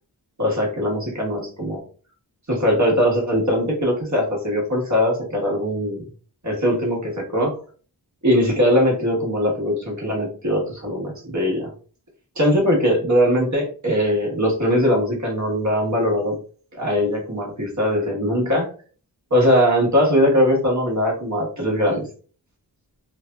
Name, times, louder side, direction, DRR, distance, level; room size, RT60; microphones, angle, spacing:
voice 1, 0.4-1.8 2.5-6.0 6.4-7.6 8.2-11.7 12.3-16.4 16.8-18.7 19.3-22.1, equal, 45° right, -1 dB, 1.3 m, -20 dB
3.2 x 2.5 x 2.2 m, 0.40 s
wide cardioid pair, 60°, 41 cm